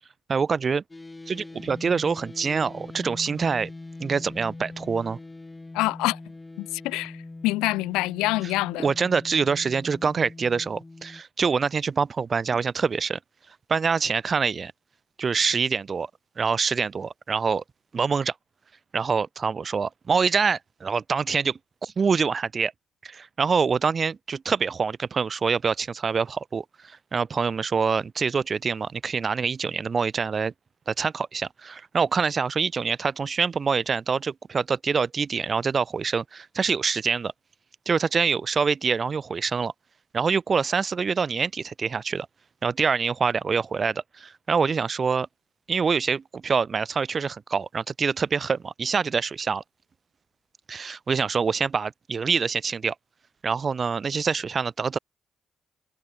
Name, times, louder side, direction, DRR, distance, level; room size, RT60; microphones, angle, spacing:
voice 1, 0.3-0.8 1.3-3.7 4.0-5.2 8.8-13.2 13.7-14.7 15.2-16.1 16.4-17.6 17.9-18.3 18.9-22.7 23.0-30.5 30.9-37.3 37.9-39.7 40.1-42.3 42.6-45.3 45.7-49.6 50.7-52.9 53.4-55.0, right 5 dB, 50° right, 4.9 m, -25 dB
sound 1, 0.9-11.2, left 2 dB, 25° left, 7.2 m, -42 dB
voice 2, 5.7-6.2 6.6-8.9, left 20 dB, 80° left, 2.1 m, -26 dB
hypercardioid pair, 40°, 0 cm